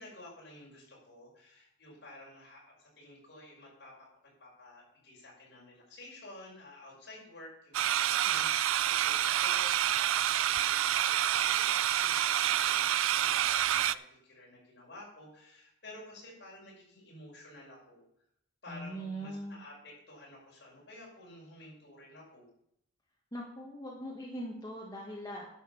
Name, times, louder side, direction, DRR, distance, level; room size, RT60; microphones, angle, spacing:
voice 1, 0.0-18.0 18.6-22.5, left 1 dB, 60° left, -3 dB, 5.6 m, -52 dB
sound 1, 7.7-13.9, right 11 dB, 90° right, 0.4 m, -28 dB
voice 2, 18.7-19.6 23.3-25.5, equal, 20° left, -3 dB, 1.6 m, -41 dB
11.0 x 6.5 x 6.9 m, 0.74 s
head